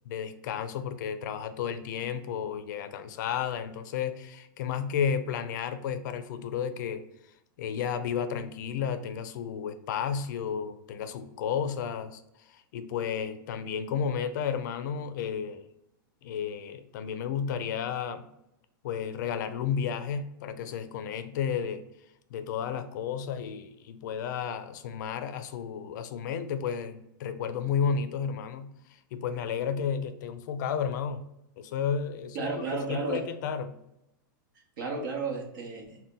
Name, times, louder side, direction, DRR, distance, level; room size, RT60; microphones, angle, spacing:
voice 1, 0.1-7.1 7.6-15.7 16.2-18.3 18.8-21.8 22.3-31.3 31.6-33.8, left 7 dB, 60° left, 0.4 m, -32 dB
voice 2, 32.3-33.2 34.8-36.0, right 4 dB, 65° right, 0.9 m, -33 dB
2.7 x 2.1 x 3.5 m
supercardioid pair, 150°, 11 cm